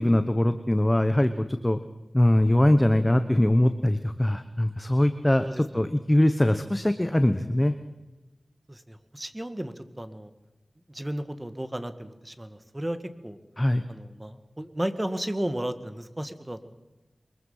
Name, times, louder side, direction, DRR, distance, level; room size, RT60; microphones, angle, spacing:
voice 1, 0.0-1.8 2.1-7.7 13.6-13.8, left 1 dB, 15° left, 9 dB, 1.0 m, -22 dB
voice 2, 8.7-10.3 10.9-13.0 13.2-13.4 13.9-16.7, right 1 dB, 15° right, 10 dB, 1.6 m, -34 dB
23.5 x 21.5 x 5.6 m, 1.1 s
wide cardioid pair, 75°, 0 cm